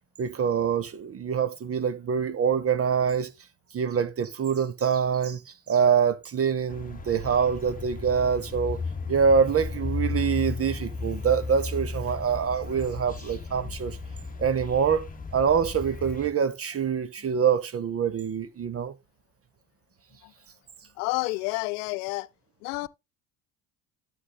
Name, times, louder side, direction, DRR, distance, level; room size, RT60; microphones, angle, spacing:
voice 1, 0.2-3.3 3.7-8.8 9.1-14.0 14.4-18.9, right 7 dB, 30° right, 0.8 m, -25 dB
sound 1, 6.7-16.3, left 4 dB, 15° left, 1.2 m, -35 dB
voice 2, 21.0-22.3 22.6-22.9, left 24 dB, 70° left, 0.5 m, -29 dB
12.5 x 8.0 x 2.3 m
hypercardioid pair, 60°, 48 cm